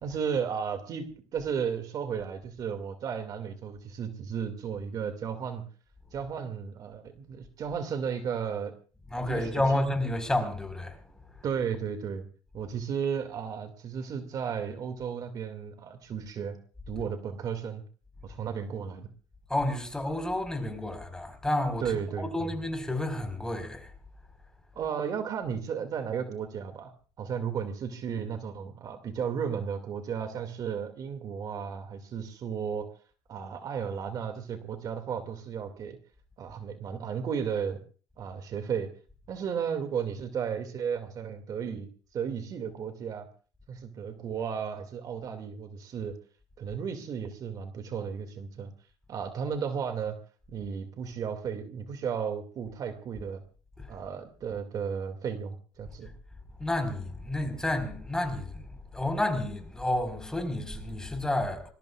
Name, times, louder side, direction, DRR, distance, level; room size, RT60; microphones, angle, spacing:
voice 1, 0.0-5.7 6.1-8.7 9.3-9.8 11.4-12.3 12.5-16.6 16.9-17.8 18.2-19.1 21.8-22.5 24.8-26.9 27.2-32.9 33.3-36.0 36.4-37.8 38.2-38.9 39.3-41.9 42.1-43.3 43.7-46.2 46.6-48.7 49.1-50.2 50.5-53.4 53.9-56.1, right 7 dB, 50° right, 2.3 m, -34 dB
voice 2, 9.1-11.5 19.5-23.9 53.8-53.9 56.6-61.7, left 1 dB, 10° left, 4.6 m, -30 dB
26.0 x 21.0 x 2.4 m
supercardioid pair, 95°, 8 cm